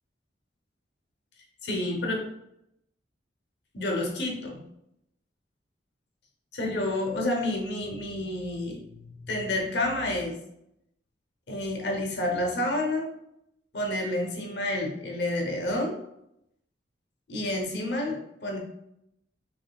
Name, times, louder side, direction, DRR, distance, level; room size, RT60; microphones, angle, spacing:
voice 1, 1.6-2.2 3.7-4.6 6.5-8.8 9.3-10.4 11.5-13.1 13.7-15.9 17.3-18.6, left 1 dB, 65° left, 1 dB, 0.9 m, -29 dB
5.1 x 3.2 x 2.3 m, 0.79 s
head